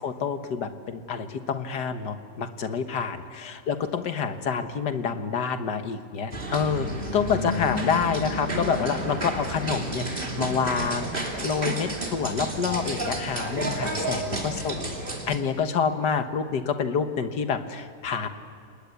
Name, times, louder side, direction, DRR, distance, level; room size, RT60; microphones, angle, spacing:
voice 1, 0.0-6.9 7.1-14.9 15.3-18.3, left 6 dB, 90° left, 8 dB, 2.0 m, -28 dB
sound 1, 6.3-15.4, right 1 dB, 30° right, 3.0 m, -31 dB
30.0 x 19.5 x 8.4 m, 2.3 s
omnidirectional pair, 1.8 m